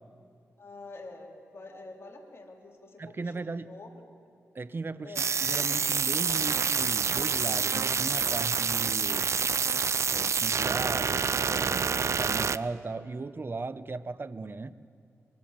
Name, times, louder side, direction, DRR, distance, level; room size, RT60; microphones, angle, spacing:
voice 1, 0.6-4.0 5.0-5.3, left 2 dB, 50° left, 1 dB, 3.9 m, -47 dB
voice 2, 3.0-3.7 4.5-5.1 5.4-9.3 10.1-14.8, right 3 dB, 40° right, 15 dB, 1.0 m, -37 dB
sound 1, 5.2-12.6, right 6 dB, 60° right, 0.6 m, -27 dB
25.5 x 23.5 x 7.6 m, 2.6 s
cardioid pair, 65°, 5 cm